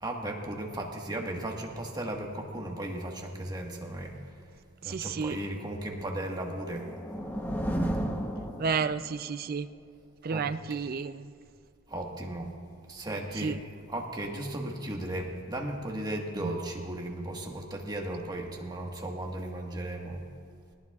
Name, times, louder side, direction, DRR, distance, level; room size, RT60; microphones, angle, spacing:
voice 1, 0.0-4.1 4.8-6.9 10.3-10.5 11.9-12.5 12.9-20.2, right 1 dB, 20° right, 0 dB, 1.5 m, -36 dB
voice 2, 4.8-5.4 8.6-9.7 10.2-11.3 13.3-13.6 16.4-16.6, right 5 dB, 45° right, 12 dB, 0.4 m, -31 dB
sound 1, 6.4-9.2, right 1 dB, 10° left, 0.9 m, -33 dB
20.0 x 18.0 x 2.4 m, 2.3 s
head